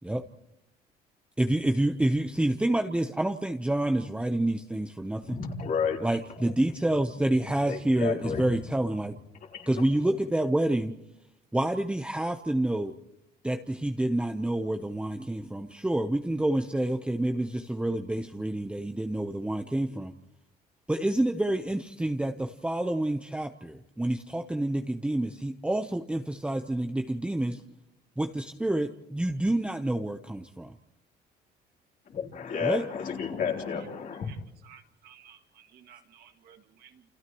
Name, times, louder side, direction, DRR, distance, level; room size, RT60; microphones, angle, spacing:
voice 1, 1.4-5.4 6.0-9.2 9.7-10.9 11.5-12.9 13.4-20.1 20.9-27.6 28.2-30.7 32.6-32.8, right 1 dB, 5° right, 0.9 m, -28 dB
voice 2, 5.2-6.0 7.7-8.5 9.5-9.8 32.1-34.3, left 6 dB, 55° left, 3.7 m, -31 dB
voice 3, 34.6-37.0, right 9 dB, 65° right, 2.1 m, -55 dB
29.5 x 29.0 x 3.1 m
cardioid pair, 110°, 17 cm